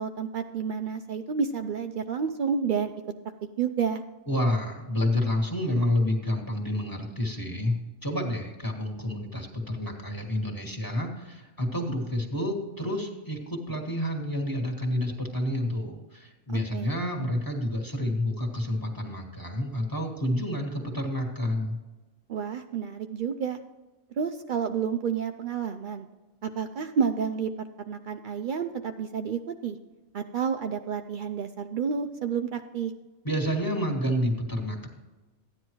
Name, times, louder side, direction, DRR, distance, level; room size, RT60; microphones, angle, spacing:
voice 1, 0.0-2.9 3.6-4.0 16.5-16.9 22.3-23.6 24.2-26.1 26.4-27.5 27.8-29.8 30.1-32.9, right 6 dB, 90° right, 7 dB, 0.4 m, -30 dB
voice 2, 4.3-21.8 33.2-34.9, left 1 dB, 15° left, 1 dB, 1.6 m, -29 dB
14.0 x 9.9 x 3.1 m, 1.2 s
omnidirectional pair, 1.4 m